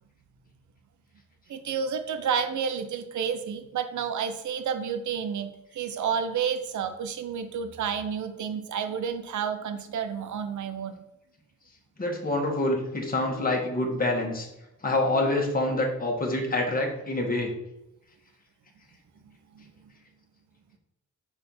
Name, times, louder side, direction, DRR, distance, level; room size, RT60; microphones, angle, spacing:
voice 1, 1.5-11.0 19.5-19.6, right 7 dB, 65° right, 9 dB, 0.8 m, -30 dB
voice 2, 12.0-14.5 14.8-17.5, left 2 dB, 25° left, 0 dB, 1.7 m, -26 dB
4.5 x 4.4 x 5.6 m, 0.91 s
cardioid pair, 75°, 32 cm